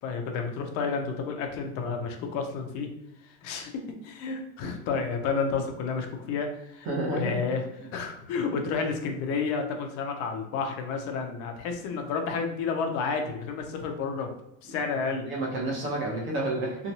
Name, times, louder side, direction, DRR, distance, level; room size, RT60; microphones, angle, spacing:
voice 1, 0.0-2.9 3.4-7.6 7.9-14.3 14.6-15.3, left 5 dB, 40° left, 4 dB, 0.5 m, -31 dB
voice 2, 6.9-7.4 15.2-16.9, right 2 dB, 30° right, -2 dB, 0.8 m, -30 dB
2.9 x 2.2 x 2.7 m, 0.81 s
supercardioid pair, 160°, 40 cm